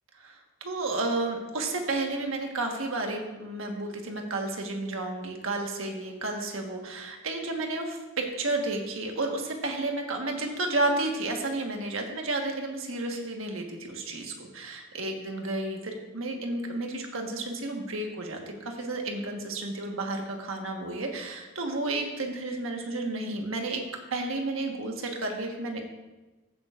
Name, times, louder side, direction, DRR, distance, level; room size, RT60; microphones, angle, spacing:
voice 1, 0.1-23.8 24.1-25.8, right 2 dB, 75° right, 2 dB, 1.4 m, -32 dB
15.0 x 8.7 x 2.5 m, 1.1 s
head